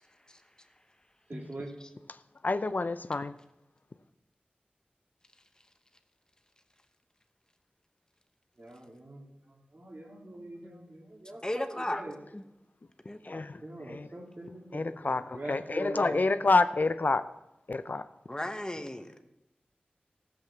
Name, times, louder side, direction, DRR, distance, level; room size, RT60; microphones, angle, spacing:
voice 1, 1.3-1.7 8.6-12.1 13.6-16.3, right 1 dB, 55° right, 2.8 m, -43 dB
voice 2, 2.4-3.3 13.2-13.6 13.9-14.1 14.7-17.3 17.7-18.0, left 3 dB, 60° left, 0.6 m, -28 dB
voice 3, 11.4-12.0 12.3-12.4 13.1-13.4 18.3-19.2, left 1 dB, 20° left, 1.0 m, -36 dB
14.0 x 7.8 x 7.2 m
wide cardioid pair, 60°, 3 cm